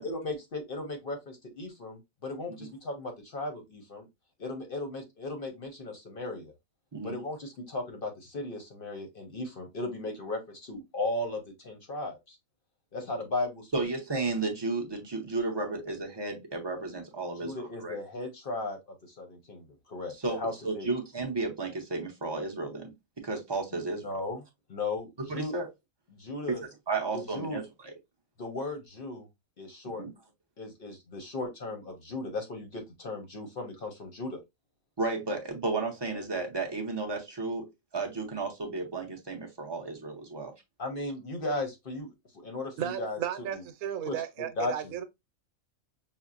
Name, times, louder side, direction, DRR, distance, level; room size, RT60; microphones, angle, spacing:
voice 1, 0.0-4.1 4.4-6.5 7.0-12.4 12.9-13.9 17.4-20.9 23.7-24.4 24.7-25.6 26.1-26.6 27.1-27.6 28.4-29.3 29.6-30.0 30.6-34.4 40.8-43.2 43.5-43.6 44.0-44.1 44.6-44.9, left 2 dB, 50° left, 0.8 m, -36 dB
voice 2, 13.7-18.0 20.2-22.9 23.2-24.2 25.3-25.7 26.9-27.6 30.0-30.1 35.0-37.7 37.9-40.5, right 3 dB, 30° right, 0.4 m, -33 dB
voice 3, 42.8-45.0, right 10 dB, 85° right, 1.0 m, -34 dB
5.7 x 2.0 x 2.4 m
omnidirectional pair, 1.5 m